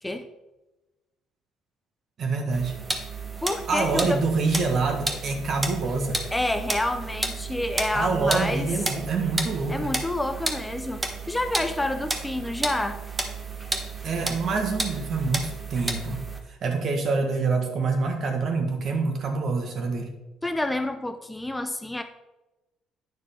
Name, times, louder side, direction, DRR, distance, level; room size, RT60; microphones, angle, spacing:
voice 1, 2.2-2.8 3.7-6.2 7.9-9.9 14.0-16.2 16.5-20.1, right 4 dB, 50° right, 4 dB, 1.6 m, -26 dB
sound 1, 2.5-16.4, right 3 dB, 20° right, 1.2 m, -32 dB
voice 2, 3.4-4.2 6.3-8.7 9.7-13.0 20.4-22.0, left 1 dB, 10° left, 8 dB, 0.5 m, -28 dB
9.5 x 6.3 x 3.7 m, 1.0 s
cardioid pair, 100°, 0 cm